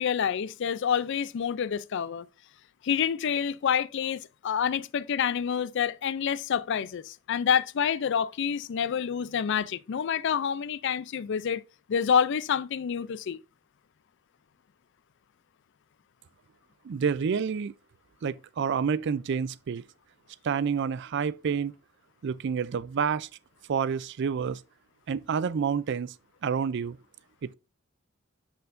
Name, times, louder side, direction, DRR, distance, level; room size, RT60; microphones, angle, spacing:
voice 1, 0.0-2.3 2.8-11.6 11.9-13.4, left 7 dB, 60° left, 0.4 m, -28 dB
voice 2, 16.8-17.7 18.2-19.8 20.4-21.7 22.2-23.3 23.7-24.6 25.1-26.1 26.4-27.0 27.4-27.5, right 6 dB, 60° right, 0.4 m, -28 dB
12.0 x 4.3 x 2.5 m
head